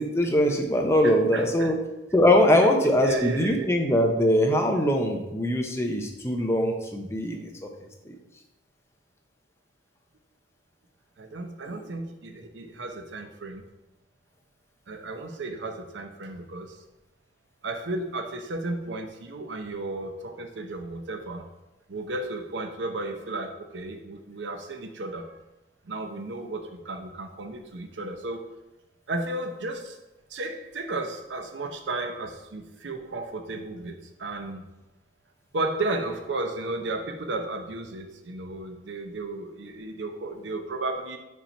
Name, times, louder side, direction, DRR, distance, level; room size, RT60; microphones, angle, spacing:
voice 1, 0.0-1.8 2.1-7.7 8.1-8.2, left 1 dB, 15° left, 2 dB, 0.6 m, -22 dB
voice 2, 1.0-1.7 2.5-2.7 3.0-3.7 11.2-13.6 14.9-16.8 17.6-21.4 21.9-25.4 25.8-28.4 29.1-30.0 30.3-34.7 35.5-41.2, right 2 dB, 70° right, 6 dB, 0.7 m, -34 dB
5.5 x 4.4 x 4.3 m, 0.99 s
head